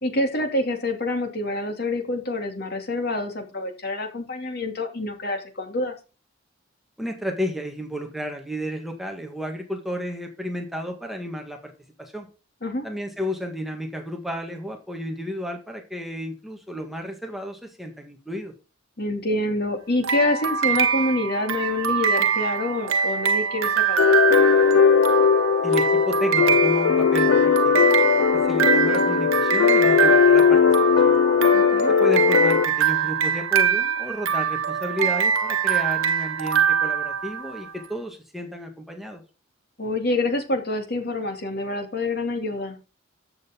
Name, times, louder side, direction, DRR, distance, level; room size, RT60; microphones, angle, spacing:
voice 1, 0.0-5.9 12.6-12.9 19.0-24.0 31.5-31.9 39.8-42.8, left 2 dB, 50° left, 5 dB, 2.6 m, -27 dB
voice 2, 7.0-11.7 12.0-12.3 12.8-18.5 25.6-27.8 28.3-30.7 31.0-31.2 31.9-39.2, equal, ahead, 3 dB, 1.6 m, -32 dB
sound 1, 20.0-37.7, right 7 dB, 90° right, 0.9 m, -24 dB
sound 2, 24.0-32.7, left 7 dB, 70° left, 0.4 m, -18 dB
14.0 x 6.6 x 3.7 m, 0.33 s
head